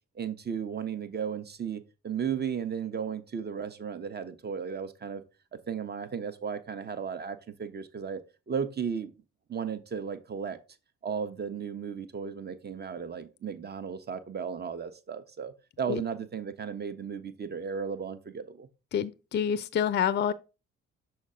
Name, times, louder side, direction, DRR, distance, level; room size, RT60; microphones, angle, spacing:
voice 1, 0.1-5.2 5.7-8.2 8.5-9.1 9.5-10.6 11.0-18.7, right 7 dB, 30° right, 0.8 m, -35 dB
voice 2, 18.9-20.3, left 8 dB, 35° left, 0.5 m, -27 dB
6.3 x 4.3 x 3.6 m
figure-of-eight pair, 40°, 33 cm